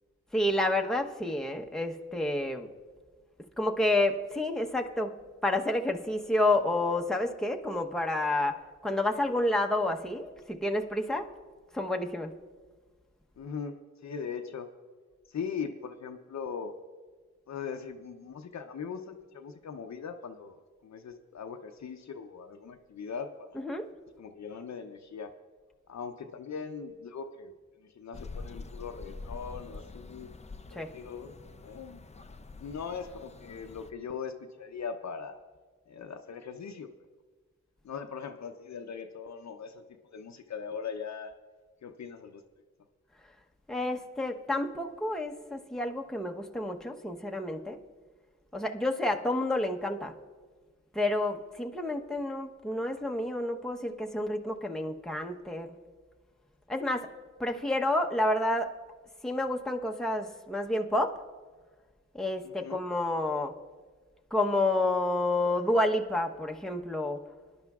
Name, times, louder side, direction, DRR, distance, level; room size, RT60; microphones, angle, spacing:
voice 1, 0.3-2.7 3.6-5.1 5.4-11.3 11.7-12.3 23.5-23.9 30.7-30.9 43.7-47.8 48.5-50.1 50.9-55.7 56.7-57.1 57.4-58.7 59.2-61.2 62.1-63.5 64.3-67.2, left 1 dB, ahead, 2 dB, 0.9 m, -29 dB
voice 2, 13.4-14.7 15.3-16.7 17.5-20.6 20.8-23.6 24.2-25.3 25.9-27.5 27.8-30.3 30.7-31.3 31.6-32.0 32.5-35.4 35.9-36.9 37.8-41.3 41.8-42.4 62.4-62.8, left 6 dB, 65° left, 6 dB, 0.7 m, -40 dB
sound 1, 28.1-33.9, left 3 dB, 25° left, 0.5 m, -46 dB
20.5 x 10.5 x 2.4 m, 1.4 s
cardioid pair, 55°, 29 cm